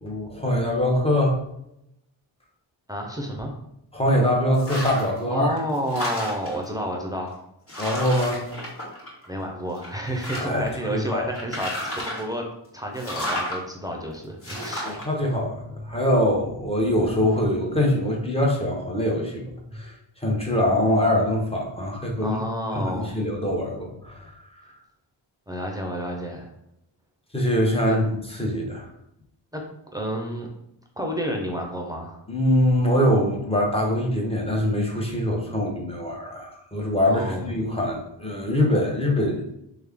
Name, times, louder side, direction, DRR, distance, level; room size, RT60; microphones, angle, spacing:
voice 1, 0.0-1.4 3.9-5.6 7.8-8.4 10.3-11.3 14.8-22.4 22.7-24.7 27.3-28.0 28.3-28.9 32.3-39.4, left 1 dB, 10° left, -2 dB, 1.0 m, -23 dB
voice 2, 2.9-3.5 5.3-7.4 9.3-12.5 12.7-15.0 22.2-23.2 25.5-26.5 27.9-28.0 29.5-30.5 31.0-32.2 37.1-37.5, equal, 10° right, 0 dB, 0.7 m, -30 dB
sound 1, 4.5-5.2 5.6-6.6 7.3-7.4 7.7-9.4 9.8-10.7 11.3-12.3 12.9-13.6 14.4-15.0, left 1 dB, 30° left, 1.5 m, -32 dB
3.1 x 2.3 x 3.6 m, 0.81 s
cardioid pair, 50°, 48 cm